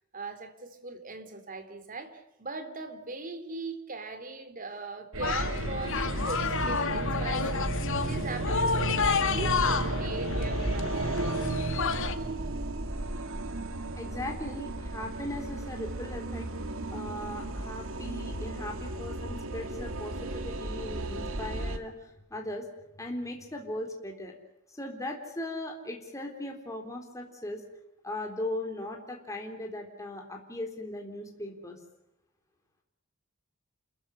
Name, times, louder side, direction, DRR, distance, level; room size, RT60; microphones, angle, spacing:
voice 1, 0.1-7.7 8.1-11.4, right 3 dB, 40° right, 9 dB, 3.6 m, -40 dB
sound 1, 5.1-21.8, right 2 dB, 70° right, 2.4 m, -34 dB
sound 2, 5.2-12.1, left 5 dB, 65° left, 2.2 m, -30 dB
voice 2, 14.0-16.5 16.9-22.7 23.0-24.3 24.7-27.6 28.0-31.8, left 1 dB, 15° left, 2 dB, 3.7 m, -38 dB
29.0 x 15.5 x 9.8 m, 0.85 s
head